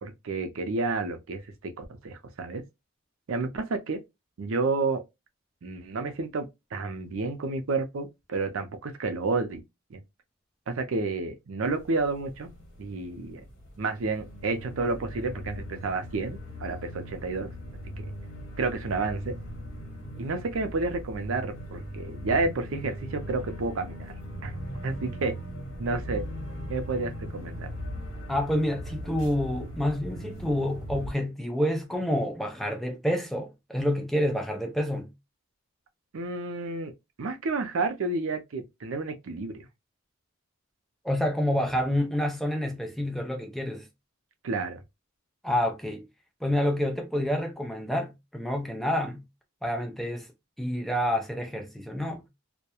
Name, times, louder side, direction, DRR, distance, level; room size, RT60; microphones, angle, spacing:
voice 1, 0.0-2.6 3.3-4.0 4.4-5.0 5.6-9.6 9.9-10.0 10.7-12.5 12.8-13.4 13.8-17.5 18.0-18.1 18.6-19.3 20.2-24.1 24.4-24.5 24.8-25.3 25.8-26.3 26.7-27.7 36.1-36.9 37.2-39.6 44.4-44.8, right 3 dB, 75° right, 0.5 m, -30 dB
sound 1, 11.6-31.1, equal, 70° left, 1.0 m, -39 dB
voice 2, 28.3-35.1 41.0-43.9 45.4-46.0 46.4-49.2 49.6-50.3 50.6-52.2, equal, ahead, 0.4 m, -28 dB
2.2 x 2.1 x 2.8 m
head